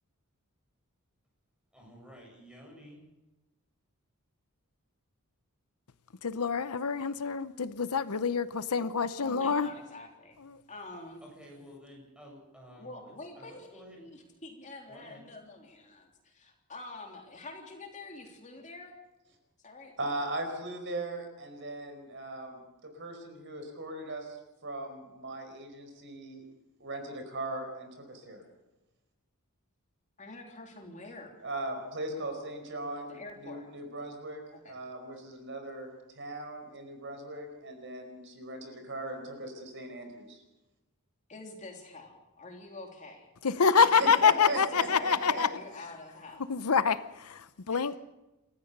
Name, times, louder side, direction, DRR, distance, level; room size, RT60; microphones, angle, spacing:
voice 1, 1.7-3.0 11.2-14.1 14.9-15.2, equal, 5° right, -1 dB, 8.0 m, -52 dB
voice 2, 6.2-9.7 10.5-10.6 43.4-45.5 46.5-48.0, left 6 dB, 80° left, 14 dB, 0.8 m, -26 dB
voice 3, 9.2-10.4 10.7-11.3 12.7-19.0 19.6-19.9 30.2-31.3 33.1-33.7 34.6-34.8 41.3-43.3 43.7-46.5 47.7-47.9, left 2 dB, 35° left, 2 dB, 3.4 m, -46 dB
voice 4, 20.0-24.4 24.6-26.4 26.8-28.4 31.4-40.4 43.7-45.4, right 2 dB, 55° right, 5 dB, 4.8 m, -39 dB
28.5 x 14.0 x 6.7 m, 1.0 s
head